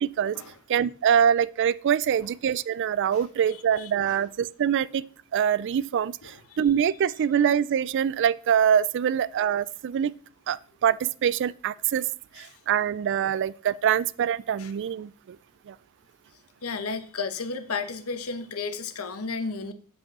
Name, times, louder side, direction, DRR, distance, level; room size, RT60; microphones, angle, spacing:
voice 1, 0.0-0.4 0.7-5.1 5.3-10.1 10.5-12.1 12.4-15.4 15.7-15.8, right 8 dB, 55° right, 0.3 m, -24 dB
voice 2, 3.1-4.2 6.2-6.6 12.3-12.5 14.6-14.7 16.6-19.7, left 4 dB, 75° left, 1.0 m, -34 dB
8.3 x 5.3 x 6.1 m
head